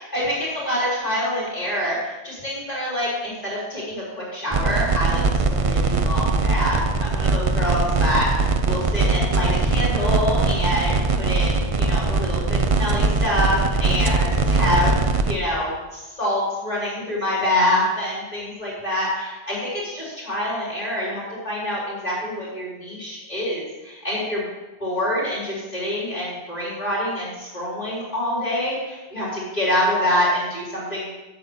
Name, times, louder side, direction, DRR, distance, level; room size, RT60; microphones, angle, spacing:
voice 1, 0.0-24.4 24.8-31.1, left 1 dB, 30° left, -8 dB, 4.0 m, -26 dB
sound 1, 4.5-15.4, right 3 dB, 40° right, 0.5 m, -21 dB
8.2 x 8.2 x 7.0 m, 1.1 s
omnidirectional pair, 1.3 m